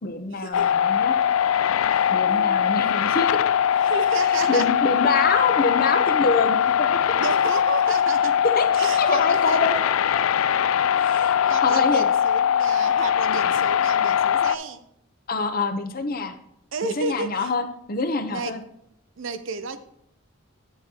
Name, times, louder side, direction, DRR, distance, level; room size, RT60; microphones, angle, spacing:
voice 1, 0.0-1.2 2.1-3.3 4.3-7.0 8.6-8.7 9.0-9.8 10.1-10.3 11.6-12.0 15.3-16.4 16.8-18.6, left 4 dB, 45° left, 7 dB, 0.7 m, -25 dB
sound 1, 0.5-14.6, left 9 dB, 85° left, 0.3 m, -21 dB
voice 2, 2.3-2.7 3.8-4.7 6.9-8.3 8.8-9.8 11.0-14.8 16.7-17.5 18.3-18.6 19.2-19.8, right 4 dB, 70° right, 10 dB, 0.7 m, -32 dB
9.9 x 7.0 x 2.8 m, 0.74 s
head